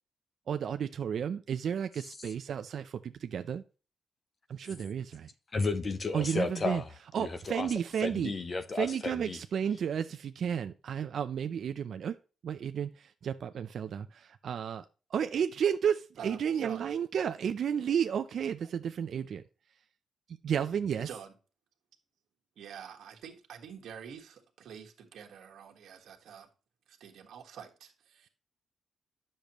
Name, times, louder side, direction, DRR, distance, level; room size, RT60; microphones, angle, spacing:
voice 1, 0.5-3.6 4.5-5.3 6.1-6.8 7.1-8.3 8.8-12.1 12.4-14.8 15.1-19.4 20.4-21.1, right 8 dB, 55° right, 0.4 m, -32 dB
voice 2, 5.5-6.9 7.2-7.7 8.0-9.4, left 3 dB, 30° left, 0.6 m, -33 dB
voice 3, 16.2-16.9 21.0-21.3 22.6-26.5 26.9-28.3, right 8 dB, 75° right, 1.5 m, -47 dB
10.0 x 6.6 x 3.0 m
wide cardioid pair, 170°, 0 cm